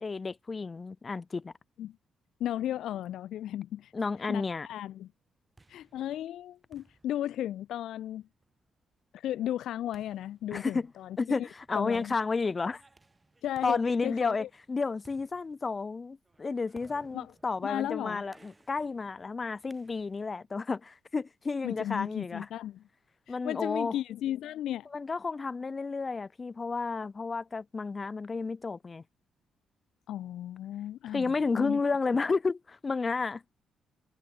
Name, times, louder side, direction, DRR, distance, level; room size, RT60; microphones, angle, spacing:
voice 1, 0.0-1.5 3.9-4.7 10.5-10.9 11.2-12.8 13.6-22.5 23.3-24.0 24.9-29.0 31.1-33.4, left 4 dB, 30° left, 1.0 m, -31 dB
voice 2, 2.4-3.9 4.3-5.1 5.7-8.2 9.1-11.2 11.7-12.1 13.4-14.5 17.1-17.3 17.6-18.2 21.6-22.8 23.3-24.9 30.1-31.8, left 12 dB, 75° left, 0.3 m, -35 dB
sound 1, 5.2-20.4, right 2 dB, 20° right, 7.1 m, -63 dB
cardioid pair, 90°, 0 cm